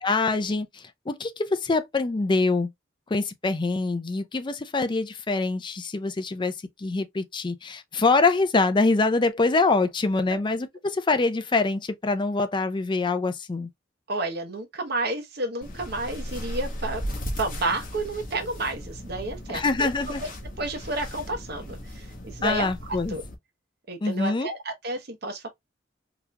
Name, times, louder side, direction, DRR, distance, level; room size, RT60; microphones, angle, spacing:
voice 1, 0.0-2.7 3.1-13.7 19.5-20.2 22.4-23.2 24.0-24.5, left 3 dB, 25° left, 0.5 m, -25 dB
voice 2, 14.1-17.0 17.4-19.9 20.2-20.3 20.6-22.7 23.1-23.2 23.9-25.5, right 2 dB, 60° right, 0.9 m, -31 dB
sound 1, 15.6-23.3, equal, 45° left, 1.2 m, -36 dB
4.0 x 2.8 x 2.2 m
head